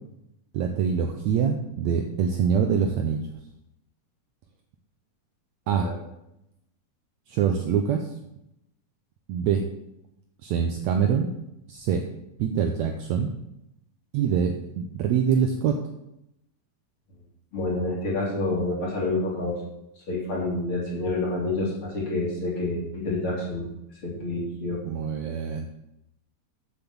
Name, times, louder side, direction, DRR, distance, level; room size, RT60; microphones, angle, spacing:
voice 1, 0.5-3.2 5.7-5.9 7.3-8.2 9.3-9.6 10.4-11.3 11.7-12.1 12.4-13.3 14.1-15.8 24.8-25.6, right 7 dB, 75° right, 4 dB, 1.7 m, -24 dB
voice 2, 17.5-19.5 20.1-23.7 24.0-24.8, left 2 dB, 40° left, -4 dB, 3.2 m, -28 dB
8.0 x 6.9 x 7.1 m, 0.84 s
omnidirectional pair, 3.8 m